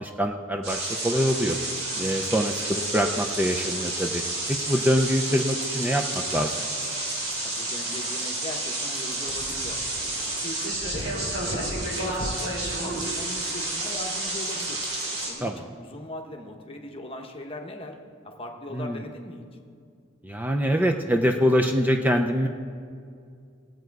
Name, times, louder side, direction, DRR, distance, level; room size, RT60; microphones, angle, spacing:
voice 1, 0.0-1.6 1.9-4.2 4.5-6.7 15.4-15.6 18.7-19.0 20.2-22.5, equal, 10° right, 4 dB, 0.4 m, -24 dB
sound 1, 0.6-15.3, right 2 dB, 80° right, 3.5 m, -30 dB
voice 2, 7.4-9.8 10.2-12.5 12.8-14.8 15.1-18.0 18.2-19.5, left 1 dB, 25° left, 2 dB, 1.0 m, -39 dB
17.0 x 7.8 x 4.7 m, 2.3 s
head